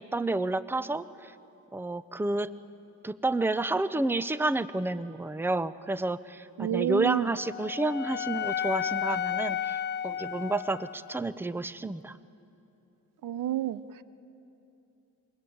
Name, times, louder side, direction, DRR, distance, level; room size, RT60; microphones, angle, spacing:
voice 1, 0.0-1.3 1.7-2.5 3.0-12.2, right 2 dB, 5° right, 15 dB, 0.7 m, -30 dB
voice 2, 6.6-7.3 13.2-13.8, right 12 dB, 75° right, 15 dB, 0.8 m, -29 dB
Wind instrument woodwind instrument, 7.0-11.3, left 9 dB, 35° left, 0.6 m, -33 dB
27.5 x 22.5 x 8.7 m, 2.9 s
cardioid pair, 70°, 33 cm